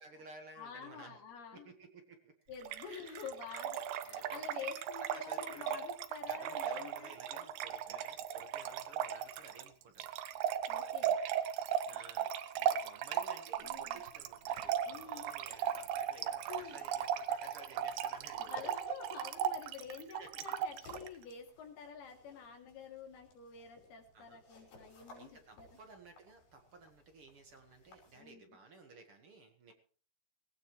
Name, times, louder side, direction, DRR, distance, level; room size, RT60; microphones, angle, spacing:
voice 1, 0.0-1.2 1.5-2.3 2.9-3.3 4.0-4.6 5.0-5.9 6.3-10.1 11.9-18.6 20.1-20.4 24.1-24.4 25.1-29.7, right 3 dB, 50° right, 4 dB, 1.9 m, -55 dB
voice 2, 0.6-1.7 2.5-7.5 7.9-8.0 10.7-11.2 13.6-14.0 14.9-15.3 16.5-16.9 17.5-17.6 18.4-25.8 28.2-28.6, left 7 dB, 80° left, 2 dB, 4.6 m, -49 dB
Trickle dribble / Fill (with liquid), 2.6-21.1, right 9 dB, 85° right, 3.0 m, -37 dB
sound 1, 13.5-28.2, left 1 dB, 65° left, 7.4 m, -59 dB
19.0 x 18.5 x 3.2 m, 0.41 s
omnidirectional pair, 4.5 m